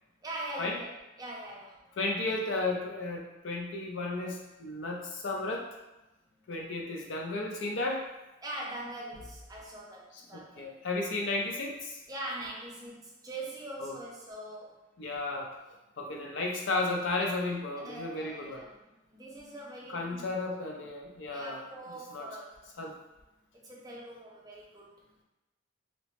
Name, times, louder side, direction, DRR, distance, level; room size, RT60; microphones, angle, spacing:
voice 1, 0.2-1.8 8.4-10.8 12.1-14.8 17.8-20.3 21.3-22.7 23.5-24.9, right 1 dB, 20° right, -3 dB, 0.4 m, -42 dB
voice 2, 2.0-5.8 6.5-8.0 10.3-12.0 13.8-13.9 15.0-15.5 16.0-18.6 19.9-21.6 22.1-22.3 22.8-22.9, left 2 dB, 70° left, 0 dB, 0.5 m, -33 dB
2.9 x 2.1 x 2.9 m, 0.98 s
head